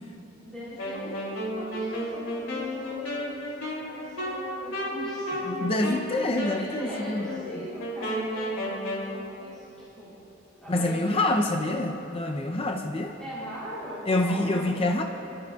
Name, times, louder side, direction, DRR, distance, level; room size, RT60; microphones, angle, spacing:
voice 1, 0.4-5.9 6.3-8.5 9.0-10.1 10.6-11.5 13.2-14.9, equal, 5° left, -11 dB, 3.3 m, -40 dB
Wind instrument woodwind instrument, 0.8-9.1, equal, 85° left, 3.0 m, -33 dB
voice 2, 5.5-7.3 10.7-13.2 14.1-15.0, left 2 dB, 30° left, 3 dB, 0.6 m, -26 dB
26.0 x 13.5 x 2.4 m, 3.0 s
head